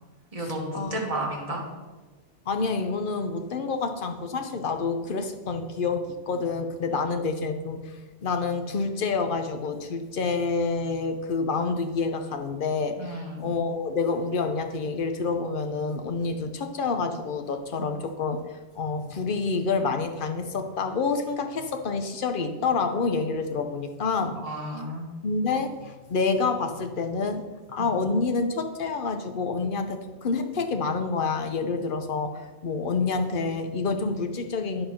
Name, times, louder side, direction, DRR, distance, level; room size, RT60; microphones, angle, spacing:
voice 1, 0.3-1.6 6.9-7.0 13.0-13.5 16.2-16.3 24.3-25.1 27.8-27.9, right 1 dB, 30° right, -1 dB, 1.6 m, -32 dB
voice 2, 2.5-7.9 8.2-18.4 18.7-24.4 25.2-27.4 27.7-34.9, left 4 dB, 50° left, 6 dB, 0.9 m, -28 dB
9.4 x 4.5 x 5.7 m, 1.3 s
omnidirectional pair, 1.2 m